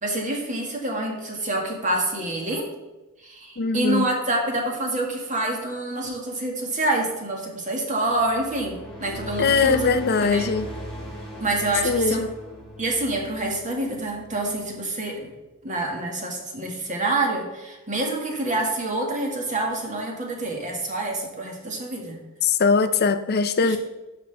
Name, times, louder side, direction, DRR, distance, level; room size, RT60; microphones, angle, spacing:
voice 1, 0.0-2.7 3.2-9.9 10.2-10.5 11.4-12.2 12.8-15.3 15.6-22.2 23.6-23.8, right 2 dB, 35° right, 0 dB, 1.8 m, -27 dB
voice 2, 3.6-4.1 9.4-10.7 11.8-12.3 22.4-23.8, left 4 dB, 50° left, 10 dB, 0.6 m, -21 dB
sound 1, 8.0-14.7, equal, 5° left, 2.2 m, -38 dB
12.5 x 5.6 x 3.4 m, 1.1 s
head